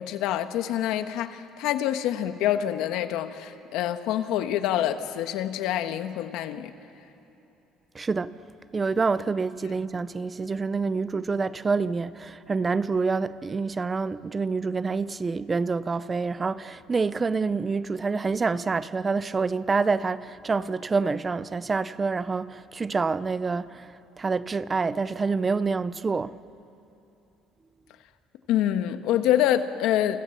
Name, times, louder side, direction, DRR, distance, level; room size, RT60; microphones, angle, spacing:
voice 1, 0.0-6.7 28.5-30.2, left 11 dB, 75° left, 1.4 m, -26 dB
voice 2, 7.9-8.4 8.7-26.4, right 4 dB, 20° right, 0.5 m, -27 dB
28.5 x 27.5 x 7.3 m
cardioid pair, 140°, 0 cm